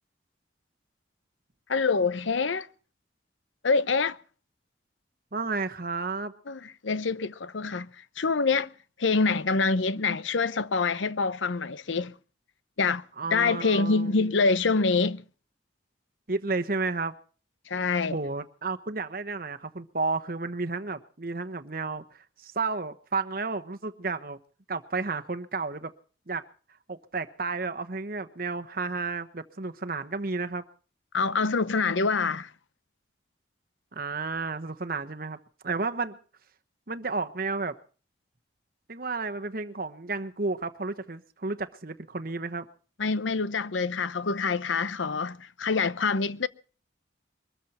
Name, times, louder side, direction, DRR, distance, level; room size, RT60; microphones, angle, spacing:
voice 1, 1.7-2.7 3.6-4.2 6.5-8.7 9.0-12.1 12.8-13.0 13.3-15.2 17.7-18.2 31.1-32.5 43.0-46.5, left 4 dB, 85° left, 0.8 m, -26 dB
voice 2, 5.3-6.3 13.2-14.3 16.3-17.1 18.1-24.4 24.7-25.9 26.3-26.4 26.9-30.6 33.9-35.4 35.6-36.2 36.9-37.8 38.9-42.6, right 3 dB, 50° right, 1.1 m, -32 dB
22.5 x 14.0 x 4.3 m
head